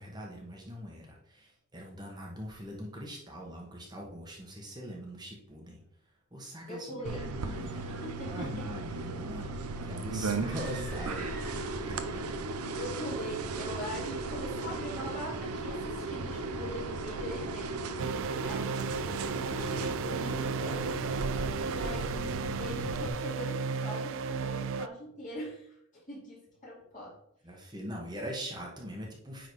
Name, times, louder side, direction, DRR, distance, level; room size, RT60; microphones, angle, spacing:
voice 1, 0.0-5.8 6.3-7.8 8.2-9.5 9.8-12.2 27.4-29.5, equal, 20° right, -1 dB, 1.3 m, -42 dB
voice 2, 6.7-7.2 7.6-8.6 12.7-18.1 18.4-20.9 21.6-27.2, equal, 35° left, -5 dB, 2.5 m, -42 dB
sound 1, 7.1-23.1, right 3 dB, 90° right, 0.7 m, -36 dB
sound 2, 10.3-12.1, right 1 dB, 5° left, 1.9 m, -48 dB
sound 3, 18.0-24.9, right 5 dB, 55° right, 0.3 m, -34 dB
9.4 x 3.9 x 4.8 m, 0.74 s
head